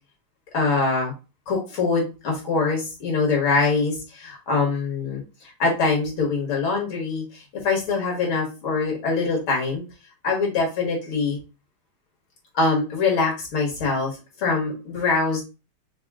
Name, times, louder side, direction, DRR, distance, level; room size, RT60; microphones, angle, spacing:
voice 1, 0.5-1.1 1.5-5.2 5.6-7.2 7.6-9.8 10.2-11.4 12.5-15.4, left 4 dB, 70° left, -1 dB, 2.4 m, -23 dB
6.0 x 2.2 x 3.6 m, 0.30 s
omnidirectional pair, 2.3 m